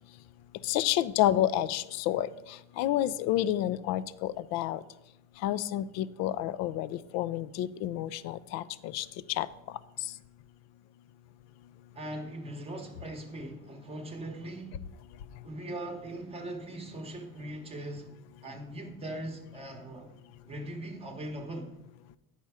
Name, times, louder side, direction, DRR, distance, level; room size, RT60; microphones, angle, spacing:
voice 1, 0.6-2.3 2.8-4.8 5.4-8.6 8.9-9.1 9.4-9.5, left 13 dB, 60° left, 0.4 m, -29 dB
voice 2, 11.9-14.8 15.4-18.1 18.4-20.1 20.4-21.7, right 1 dB, 20° right, 0.9 m, -40 dB
8.5 x 5.6 x 4.7 m
cardioid pair, 135°, 30 cm